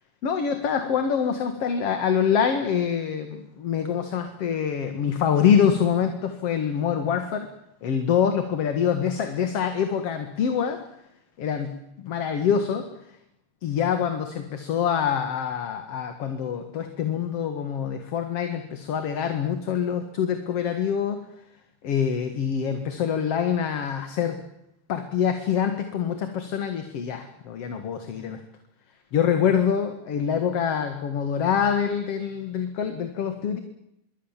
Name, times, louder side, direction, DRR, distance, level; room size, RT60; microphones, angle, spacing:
voice 1, 0.2-7.5 7.8-10.8 11.4-12.9 13.6-21.2 21.8-24.4 24.9-28.4 29.1-33.6, left 7 dB, 55° left, 7 dB, 2.7 m, -25 dB
25.5 x 24.0 x 7.5 m, 0.83 s
omnidirectional pair, 3.3 m